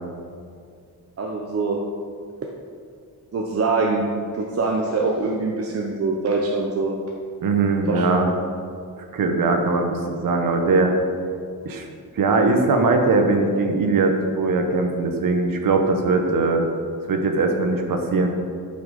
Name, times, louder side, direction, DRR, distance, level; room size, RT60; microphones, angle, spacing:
voice 1, 1.2-1.8 3.3-7.0 7.9-8.1, right 3 dB, 45° right, 0 dB, 0.8 m, -24 dB
voice 2, 7.4-8.3 9.1-10.9 11.6-11.9 12.1-16.7 17.1-18.4, right 3 dB, 70° right, 4 dB, 1.3 m, -20 dB
11.0 x 5.9 x 5.2 m, 2.2 s
wide cardioid pair, 160°, 35 cm